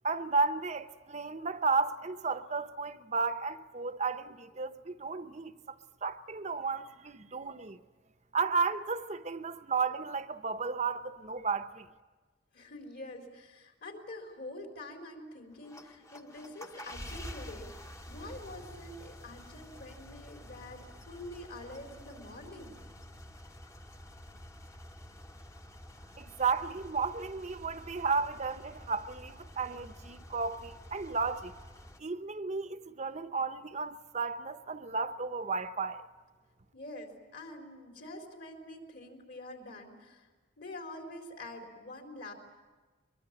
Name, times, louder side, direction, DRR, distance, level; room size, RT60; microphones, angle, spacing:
voice 1, 0.0-5.8 6.0-7.8 8.3-11.9 26.2-31.5 32.0-36.0, right 4 dB, 40° right, 0.8 m, -33 dB
voice 2, 12.5-22.8 36.7-40.3 40.6-42.3, left 1 dB, 60° left, 4.3 m, -46 dB
sound 1, 15.5-32.0, left 1 dB, 15° left, 1.0 m, -49 dB
23.5 x 23.0 x 8.9 m
head